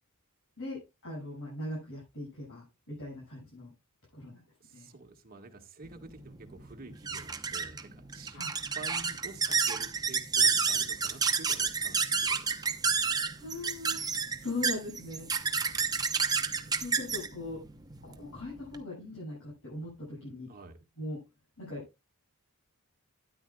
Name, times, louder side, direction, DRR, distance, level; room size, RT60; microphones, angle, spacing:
voice 1, 0.6-3.7 4.1-4.4 4.7-4.9 8.3-8.5 13.4-14.1 14.4-15.3 16.7-17.6 18.0-20.5 21.0-21.2 21.6-21.8, left 2 dB, 65° left, -5 dB, 6.5 m, -40 dB
voice 2, 4.6-8.4 8.7-12.7 15.7-15.9 20.5-20.8, right 3 dB, 40° right, 4 dB, 1.7 m, -49 dB
sound 1, 5.9-18.8, right 5 dB, 15° right, 0.8 m, -30 dB
13.0 x 10.0 x 2.3 m, 0.24 s
head